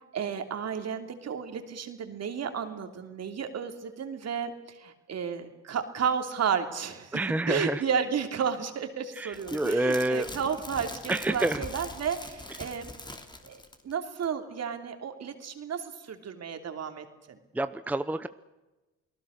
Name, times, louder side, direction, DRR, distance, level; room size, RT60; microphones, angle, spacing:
voice 1, 0.1-7.2 7.5-12.9 13.5-17.4, right 7 dB, 55° right, 7 dB, 3.1 m, -32 dB
voice 2, 7.1-7.8 9.2-10.3 11.1-11.6 17.5-18.3, right 1 dB, 5° right, 12 dB, 0.7 m, -28 dB
sound 1, 9.3-13.9 14.2-14.3, left 1 dB, 15° left, 3.0 m, -42 dB
29.0 x 19.0 x 6.6 m, 1.1 s
cardioid pair, 90°, 30 cm